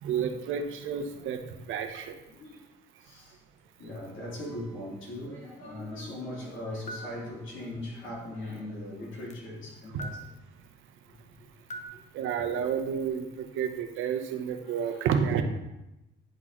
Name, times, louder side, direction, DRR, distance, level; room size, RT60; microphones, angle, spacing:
voice 1, 0.0-2.1 9.9-10.0 12.1-15.4, right 7 dB, 85° right, 7 dB, 0.7 m, -30 dB
voice 2, 3.0-3.4 3.8-10.2 14.6-15.1, left 1 dB, 75° left, -4 dB, 2.3 m, -39 dB
sound 1, 6.9-7.2 9.3-9.4 10.0-10.3 11.7-11.8, right 1 dB, 35° left, 0.8 m, -39 dB
9.8 x 4.0 x 3.0 m, 0.93 s
cardioid pair, 90°, 20 cm